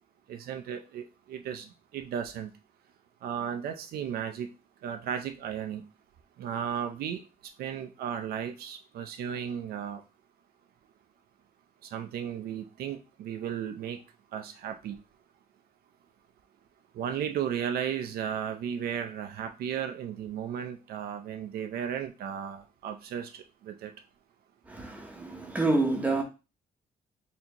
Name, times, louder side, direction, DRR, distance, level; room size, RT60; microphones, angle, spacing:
voice 1, 0.3-1.7 1.9-2.5 3.2-4.5 4.8-5.8 6.4-7.2 7.6-10.0 11.9-14.0 14.3-15.0 16.9-23.9, right 8 dB, 70° right, 0.5 m, -35 dB
voice 2, 24.7-26.2, right 2 dB, 10° right, 0.8 m, -28 dB
4.2 x 2.8 x 2.8 m
cardioid pair, 160°, 16 cm